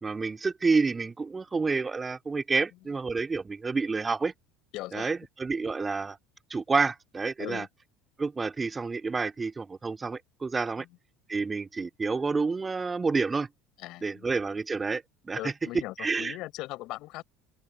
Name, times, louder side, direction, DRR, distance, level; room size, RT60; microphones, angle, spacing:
voice 1, 0.0-4.3 4.9-6.2 6.5-7.6 8.2-10.8 11.3-13.5 14.0-15.0 15.3-15.5 16.0-16.4, right 4 dB, 20° right, 2.5 m, -29 dB
voice 2, 4.7-5.1 7.4-7.7 10.8-10.9 13.8-14.3 15.3-17.2, left 18 dB, 60° left, 4.9 m, -39 dB
open air
hypercardioid pair, 80°, 0 cm